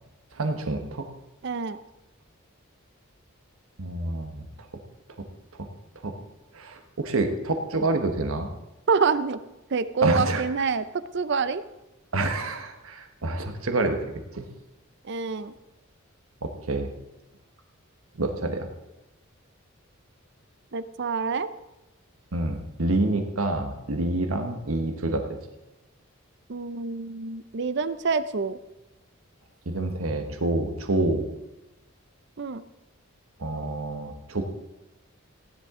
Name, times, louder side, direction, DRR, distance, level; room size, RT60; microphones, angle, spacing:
voice 1, 0.3-1.1 3.8-4.5 5.6-5.7 6.0-6.1 6.5-8.5 10.0-10.4 12.1-14.0 14.3-14.5 16.4-16.9 18.2-18.7 22.3-25.2 29.7-31.2 33.4-34.5, right 2 dB, 75° right, 6 dB, 1.2 m, -27 dB
voice 2, 1.4-1.8 8.9-9.4 9.7-11.6 15.0-15.5 20.7-21.5 26.5-28.6 32.4-32.6, right 5 dB, 55° right, 14 dB, 0.6 m, -26 dB
16.0 x 10.5 x 3.7 m, 0.98 s
head